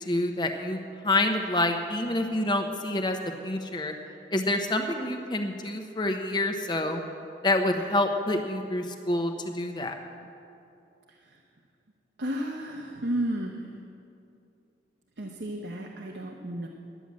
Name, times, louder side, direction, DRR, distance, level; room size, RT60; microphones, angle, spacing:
voice 1, 0.0-3.2 3.4-3.9 4.3-7.0 7.4-10.0, left 2 dB, 25° left, 5 dB, 0.8 m, -27 dB
voice 2, 11.1-11.4 12.2-13.8 15.2-16.7, right 1 dB, 80° right, 1 dB, 0.9 m, -33 dB
11.0 x 9.8 x 7.4 m, 2.5 s
head